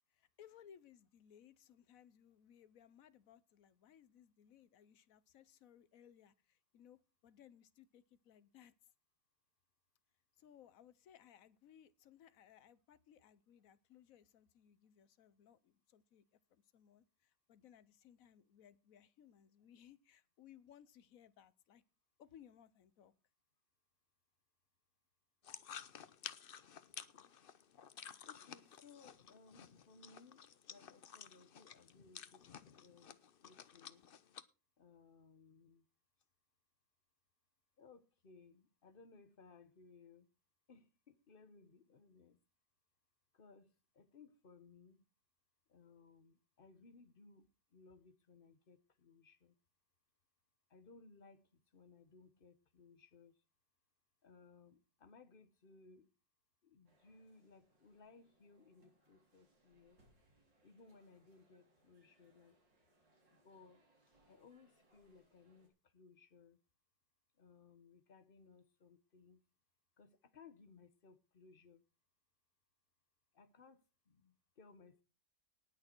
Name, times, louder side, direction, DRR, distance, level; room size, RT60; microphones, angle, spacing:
voice 1, 0.1-8.7 10.4-16.2 16.5-21.8 22.2-23.1, left 9 dB, 60° left, 1.0 m, -63 dB
sound 1, 25.4-34.4, left 8 dB, 85° left, 0.5 m, -53 dB
voice 2, 28.2-32.4 32.7-34.0 34.8-35.8 37.8-40.3 40.7-42.4 43.3-45.0 45.7-49.5 50.7-53.4 54.2-56.1 56.6-60.0 60.6-62.6 63.3-63.8 64.2-66.6 67.4-69.4 70.0-71.8 73.3-75.0, left 4 dB, 40° left, 0.9 m, -63 dB
sound 2, 56.9-65.7, right 1 dB, 75° right, 4.1 m, -75 dB
19.0 x 6.5 x 4.4 m
omnidirectional pair, 2.0 m